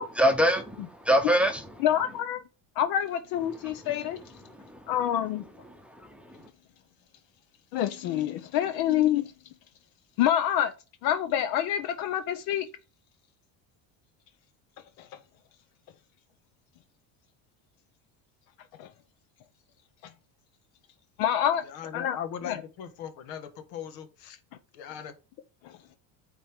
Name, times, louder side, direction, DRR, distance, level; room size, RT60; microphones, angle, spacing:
voice 1, 0.2-1.7 3.6-3.7 4.4-4.9 5.8-6.5, equal, 5° right, 0.8 m, -25 dB
voice 2, 1.8-2.4 2.8-4.2 4.9-5.4 7.7-9.3 10.2-10.7 11.0-12.7 18.8-18.9 21.2-21.6 21.9-22.2 22.5-22.6 25.6-25.7, left 11 dB, 70° left, 0.7 m, -26 dB
voice 3, 21.6-24.4 24.7-25.1, left 8 dB, 85° left, 1.4 m, -39 dB
9.0 x 4.2 x 3.5 m
cardioid pair, 155°, 36 cm